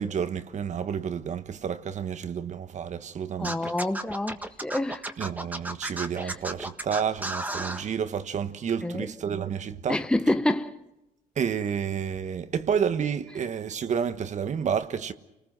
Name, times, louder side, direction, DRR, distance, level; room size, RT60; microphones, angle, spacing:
voice 1, 0.0-3.7 5.2-10.0 11.4-15.1, right 7 dB, 50° right, 1.3 m, -30 dB
voice 2, 3.4-5.1 6.2-6.3 8.8-9.1 9.9-10.8, left 1 dB, 5° left, 0.8 m, -27 dB
Scratching (performance technique), 3.4-7.8, right 1 dB, 10° right, 1.6 m, -33 dB
29.5 x 19.5 x 6.2 m
cardioid pair, 120°, 16 cm